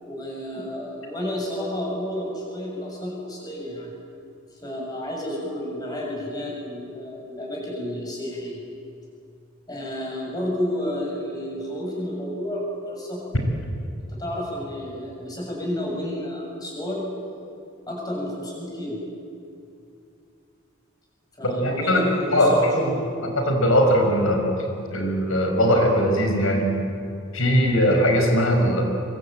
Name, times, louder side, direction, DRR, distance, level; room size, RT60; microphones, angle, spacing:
voice 1, 0.0-3.9 4.5-8.6 9.7-13.3 14.1-17.1 17.9-19.0 21.4-23.0, left 1 dB, 20° left, -2 dB, 7.4 m, -31 dB
voice 2, 21.4-22.0 22.3-23.0 23.2-24.4 24.9-26.7 27.3-28.8, equal, 80° left, 3 dB, 5.6 m, -20 dB
24.5 x 24.0 x 9.0 m, 2.6 s
head